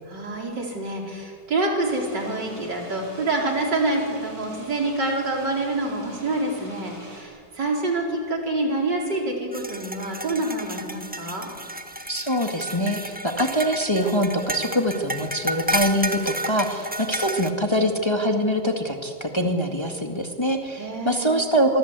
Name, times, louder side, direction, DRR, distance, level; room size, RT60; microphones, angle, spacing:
voice 1, 0.1-11.5 20.8-21.4, right 2 dB, 80° right, 0 dB, 4.8 m, -27 dB
sound 1, 1.8-7.2, right 2 dB, 45° right, 7.1 m, -43 dB
sound 2, 9.5-17.5, right 1 dB, 5° right, 1.1 m, -31 dB
voice 2, 12.1-21.8, equal, 15° left, 3 dB, 1.9 m, -24 dB
25.5 x 24.0 x 8.2 m, 2.2 s
omnidirectional pair, 1.9 m